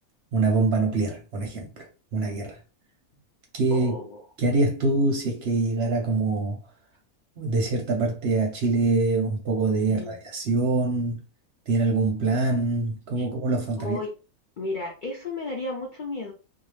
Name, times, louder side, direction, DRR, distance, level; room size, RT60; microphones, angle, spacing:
voice 1, 0.3-1.8 2.1-2.6 3.5-3.9 4.4-6.6 7.4-11.2 11.7-14.0, right 3 dB, 60° right, 0.7 m, -24 dB
voice 2, 3.7-4.2 9.8-10.2 13.2-13.3 13.8-14.1 14.6-16.3, left 2 dB, 70° left, 0.4 m, -33 dB
2.7 x 2.0 x 3.1 m
omnidirectional pair, 1.5 m